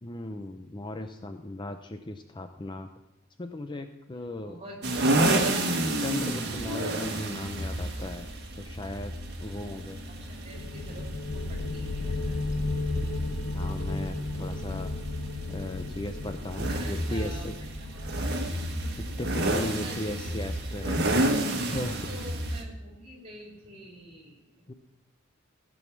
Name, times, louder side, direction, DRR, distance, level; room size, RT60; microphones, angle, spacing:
voice 1, 0.0-2.9 3.4-4.6 6.0-8.3 8.6-9.1 9.4-10.0 13.0-13.1 13.5-14.9 15.5-17.6 19.0-21.1 21.7-22.1 24.7-24.8, left 2 dB, 20° left, 7 dB, 0.5 m, -37 dB
voice 2, 4.2-5.8 10.1-13.0 16.7-18.5 18.8-19.1 19.7-20.4 20.7-20.8 21.4-24.6, right 1 dB, 30° right, -1 dB, 3.4 m, -48 dB
sound 1, 4.8-22.6, right 1 dB, 55° right, 1.5 m, -31 dB
sound 2, 10.5-21.9, left 2 dB, 90° left, 1.1 m, -35 dB
16.0 x 6.3 x 6.0 m, 0.93 s
head